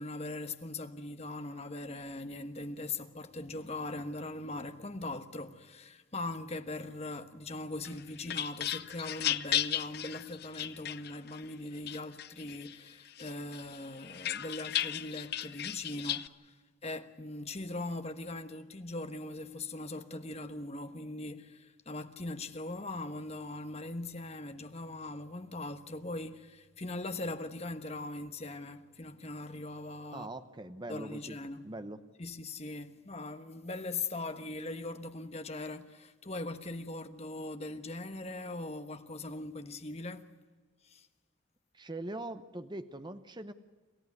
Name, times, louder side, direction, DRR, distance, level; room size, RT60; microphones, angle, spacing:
voice 1, 0.0-16.5 16.8-30.3 30.9-31.6 32.2-40.3 40.8-41.1, left 2 dB, 30° left, 1.2 m, -40 dB
sound 1, 7.8-11.4 11.9-12.8 13.2-16.3, left 11 dB, 50° left, 0.7 m, -35 dB
voice 2, 30.1-31.4 31.6-32.0 41.7-43.5, right 1 dB, 20° right, 0.9 m, -42 dB
27.5 x 15.0 x 9.5 m
head